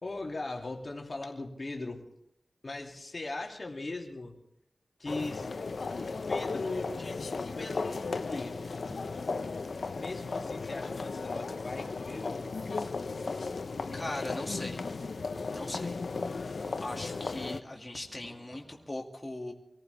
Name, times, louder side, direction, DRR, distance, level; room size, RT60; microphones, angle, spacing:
voice 1, 0.0-2.0 2.6-4.3 5.0-5.5 6.0-8.7 9.9-12.6, left 2 dB, 55° left, 1 dB, 2.6 m, -39 dB
sound 1, 5.1-17.6, left 4 dB, 80° left, 0.7 m, -36 dB
sound 2, 6.8-18.9, right 1 dB, 70° right, 5.4 m, -55 dB
voice 2, 13.9-14.8 15.5-16.0 16.3-19.5, left 2 dB, 30° left, 0 dB, 2.3 m, -39 dB
24.5 x 14.5 x 3.5 m, 0.76 s
cardioid pair, 50°, 0 cm